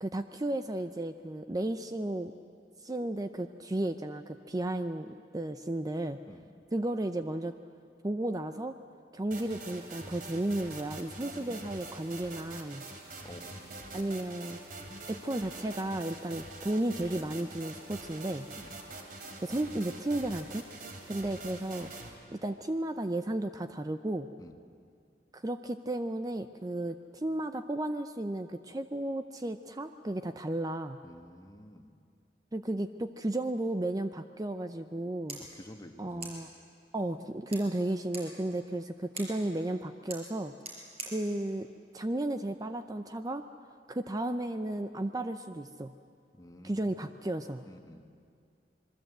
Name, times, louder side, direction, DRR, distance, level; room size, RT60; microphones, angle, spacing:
voice 1, 0.0-2.3 2.8-6.2 6.7-7.5 8.0-8.7 9.1-12.9 13.9-14.6 15.1-18.5 19.4-20.6 21.1-21.9 22.3-24.3 25.3-31.0 32.5-35.4 36.0-36.5 36.9-40.5 41.1-41.7 41.9-43.4 43.9-45.9 46.6-47.7, right 1 dB, 20° right, 9 dB, 0.6 m, -34 dB
sound 1, 9.3-22.1, right 2 dB, 55° right, 3.1 m, -45 dB
voice 2, 11.2-11.6 13.2-13.6 18.6-18.7 24.4-24.5 31.0-31.9 35.3-36.3 46.3-47.1 47.7-48.0, left 1 dB, 20° left, 5 dB, 1.6 m, -50 dB
sound 2, 34.9-42.9, right 2 dB, 35° right, 5.4 m, -48 dB
26.5 x 22.0 x 8.0 m, 2.3 s
head